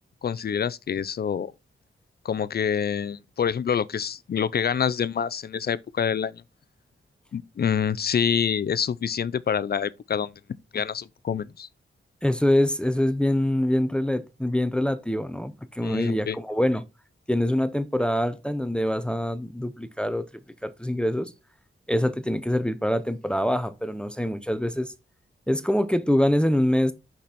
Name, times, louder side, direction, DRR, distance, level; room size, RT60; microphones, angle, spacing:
voice 1, 0.2-1.5 2.2-6.4 7.3-10.3 10.7-11.7 15.8-16.4, left 7 dB, 50° left, 0.5 m, -26 dB
voice 2, 12.2-16.8 17.3-20.3 20.6-21.3 21.9-24.9 25.5-26.9, left 1 dB, 5° left, 0.6 m, -24 dB
6.0 x 5.9 x 4.2 m
wide cardioid pair, 135°, 21 cm